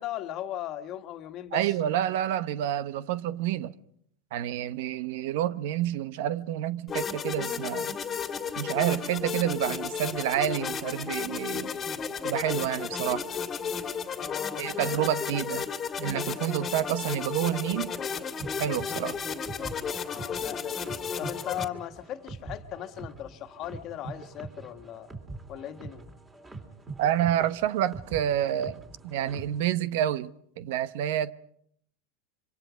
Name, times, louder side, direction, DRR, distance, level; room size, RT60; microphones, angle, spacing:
voice 1, 0.0-1.8 14.2-15.1 20.0-25.1 25.5-26.0, left 12 dB, 40° left, 1.6 m, -38 dB
voice 2, 1.5-3.7 4.3-7.9 8.6-11.7 12.2-13.2 14.6-15.7 16.0-17.9 18.6-19.2 27.0-30.3 30.6-31.3, right 11 dB, 70° right, 0.9 m, -28 dB
sound 1, 6.9-21.6, left 6 dB, 25° left, 2.0 m, -33 dB
sound 2, 18.4-29.7, right 3 dB, 15° right, 3.7 m, -44 dB
26.5 x 24.5 x 5.1 m
supercardioid pair, 125°, 0 cm